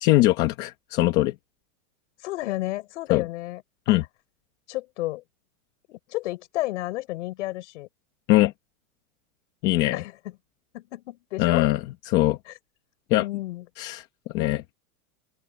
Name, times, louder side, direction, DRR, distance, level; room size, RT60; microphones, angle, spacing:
voice 1, 0.0-1.3 3.1-3.2 3.9-4.0 8.3-8.5 9.6-10.0 11.4-11.8 12.1-12.4 13.1-13.3 13.8-14.0 14.3-14.7, left 17 dB, 25° left, 0.9 m, -21 dB
voice 2, 2.2-3.6 3.9-4.0 4.7-5.2 5.9-7.9 9.9-10.1 10.7-11.7 12.5-12.6 13.1-13.7, left 17 dB, 55° left, 6.4 m, -32 dB
open air
supercardioid pair, 175°, 44 cm